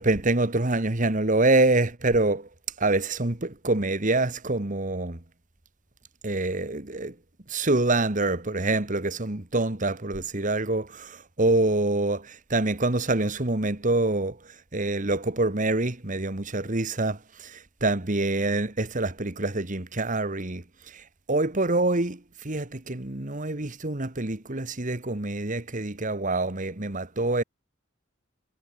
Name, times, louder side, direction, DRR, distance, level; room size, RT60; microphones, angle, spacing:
voice 1, 0.0-2.5 2.8-5.2 6.2-7.2 7.5-27.4, right 2 dB, 40° right, 1.8 m, -26 dB
head